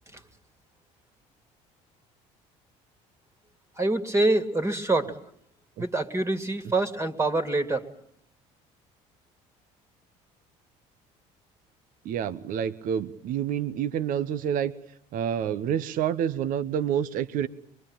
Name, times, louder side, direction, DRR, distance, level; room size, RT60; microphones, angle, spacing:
voice 1, 3.8-5.2 5.8-7.8, right 2 dB, 20° right, 6 dB, 2.6 m, -25 dB
voice 2, 12.0-14.7 15.1-17.5, right 9 dB, 65° right, 14 dB, 1.1 m, -28 dB
23.5 x 22.5 x 8.9 m, 0.67 s
supercardioid pair, 90°, 15 cm